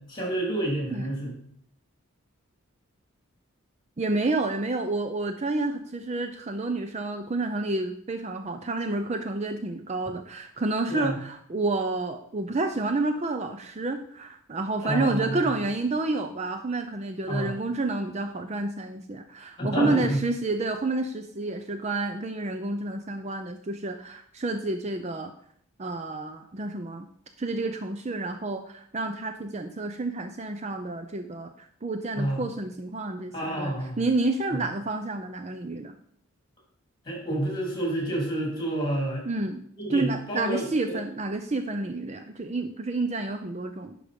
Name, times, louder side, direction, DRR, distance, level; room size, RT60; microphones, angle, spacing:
voice 1, 0.1-1.3 10.9-11.2 14.8-15.6 17.3-17.5 19.6-20.2 32.1-32.4 33.3-34.0 37.1-39.2 39.8-41.0, right 1 dB, 20° left, -1 dB, 3.5 m, -29 dB
voice 2, 4.0-25.3 25.8-27.1 27.4-35.9 39.2-39.6 39.9-43.9, right 2 dB, 30° right, 7 dB, 0.5 m, -29 dB
11.0 x 5.0 x 5.2 m, 0.63 s
head